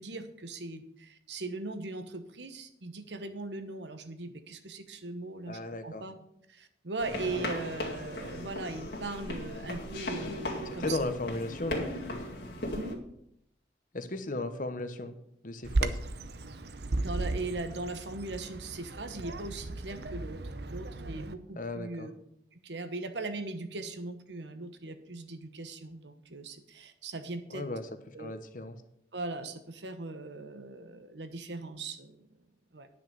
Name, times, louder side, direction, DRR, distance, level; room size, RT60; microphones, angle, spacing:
voice 1, 0.0-6.1 6.5-11.0 12.7-13.0 17.0-20.4 20.7-22.1 22.5-27.7 28.1-28.3 29.1-32.2 32.7-32.9, right 3 dB, 85° right, 9 dB, 1.2 m, -39 dB
voice 2, 5.5-6.0 10.8-11.9 13.9-15.2 15.4-16.0 21.6-22.1 27.5-28.8, left 2 dB, 50° left, 9 dB, 1.0 m, -36 dB
sound 1, 7.0-12.9, left 1 dB, 70° left, 2.3 m, -37 dB
Bird vocalization bird call bird song, 15.6-21.3, right 2 dB, 70° right, 0.7 m, -35 dB
10.0 x 6.0 x 7.6 m, 0.75 s
head